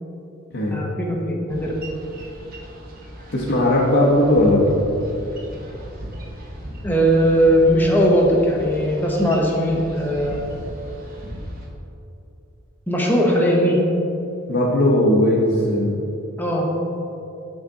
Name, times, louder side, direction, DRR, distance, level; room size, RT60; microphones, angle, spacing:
voice 1, 0.7-1.7 6.8-10.4 12.9-13.8 16.4-16.7, equal, 10° left, -2 dB, 0.9 m, -19 dB
Boat Water vehicle, 1.5-11.7, equal, 45° right, 0.9 m, -37 dB
voice 2, 3.3-4.7 14.5-15.9, left 1 dB, 55° left, -5 dB, 0.9 m, -17 dB
7.1 x 6.4 x 3.7 m, 2.8 s
head